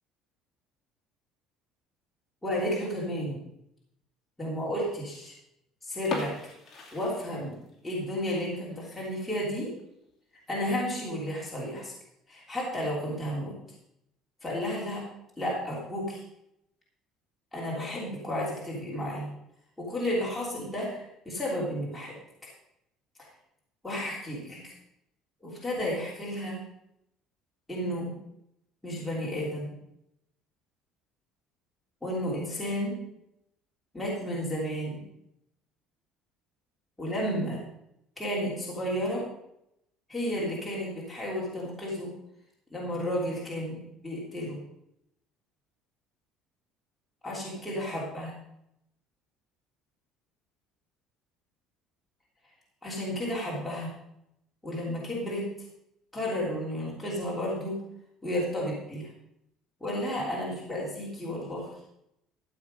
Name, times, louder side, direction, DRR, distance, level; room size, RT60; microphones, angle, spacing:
voice 1, 2.4-3.4 4.4-5.3 5.8-6.3 6.9-7.5 7.8-9.7 10.5-11.9 12.3-13.5 14.4-15.0 15.4-16.2 17.5-19.3 19.8-22.1 22.4-22.5 23.8-24.7 25.4-26.6 27.7-28.1 28.8-29.8 32.0-33.0 33.9-35.0 37.0-37.6 38.2-39.2 40.1-42.1 42.7-44.6 47.2-48.3 52.8-53.9 54.6-55.4 56.1-57.8 58.2-59.1 59.8-61.7, equal, 5° left, -6 dB, 3.2 m, -32 dB
sound 1, 6.0-7.9 8.2-8.3 8.9-9.0 9.4-9.5 9.8-9.9 10.6-11.0, left 3 dB, 30° left, 2.6 m, -38 dB
13.0 x 8.0 x 5.3 m, 0.79 s
cardioid pair, 170°, 0 cm